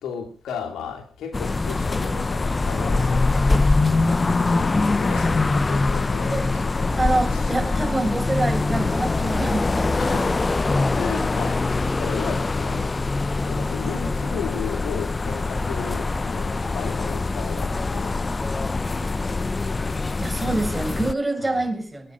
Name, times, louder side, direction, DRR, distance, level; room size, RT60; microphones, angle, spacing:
voice 1, 0.0-7.9 10.0-10.7 10.9-12.9 13.4-18.2 21.4-21.7, left 6 dB, 80° left, 3.1 m, -35 dB
sound 1, 1.3-21.1, left 3 dB, 35° left, 0.9 m, -23 dB
voice 2, 6.9-10.4 20.2-22.1, right 2 dB, 10° right, 7.0 m, -26 dB
22.0 x 9.4 x 6.5 m
supercardioid pair, 45°, 0 cm